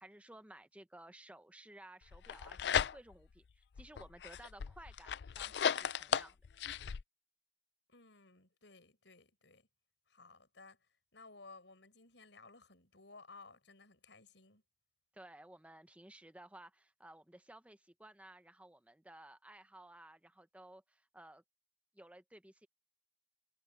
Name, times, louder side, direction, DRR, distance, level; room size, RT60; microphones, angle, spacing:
voice 1, 0.0-6.4 15.1-21.4 21.9-22.7, right 1 dB, 5° right, 0.8 m, -56 dB
sound 1, 2.1-3.3 3.8-7.0, left 7 dB, 65° left, 0.4 m, -36 dB
voice 2, 7.9-9.7 10.1-14.6, left 3 dB, 80° left, 5.3 m, -58 dB
head